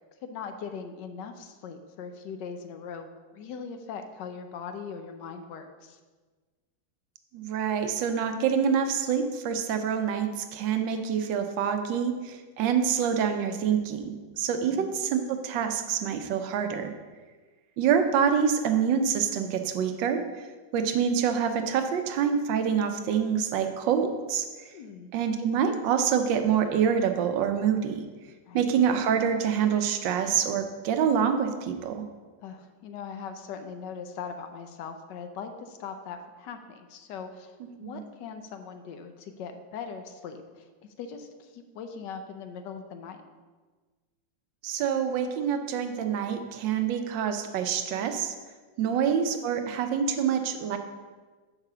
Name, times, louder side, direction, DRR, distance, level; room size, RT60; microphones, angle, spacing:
voice 1, 0.2-6.0 14.6-14.9 24.7-25.1 28.5-28.7 32.4-37.5 37.8-40.7 41.0-43.2 48.8-49.0, left 6 dB, 75° left, 7 dB, 1.3 m, -40 dB
voice 2, 7.3-16.9 17.8-20.2 20.7-24.4 25.1-28.0 28.5-32.0 37.8-38.0 44.6-48.3 48.8-50.8, right 7 dB, 80° right, 7 dB, 1.4 m, -26 dB
6.0 x 4.8 x 6.6 m, 1.4 s
omnidirectional pair, 2.0 m